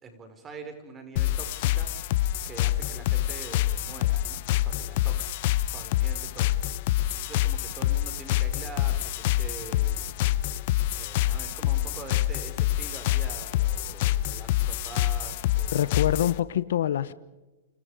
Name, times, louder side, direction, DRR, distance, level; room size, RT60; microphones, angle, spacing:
voice 1, 0.0-1.9 2.4-5.3 5.7-6.6 7.1-10.4 11.0-16.2, right 4 dB, 20° right, 7 dB, 5.4 m, -44 dB
sound 1, 1.2-16.4, left 13 dB, 55° left, 1.1 m, -26 dB
voice 2, 15.7-17.1, left 11 dB, 75° left, 15 dB, 1.0 m, -25 dB
29.5 x 27.5 x 5.2 m, 1.1 s
hypercardioid pair, 135°, 0 cm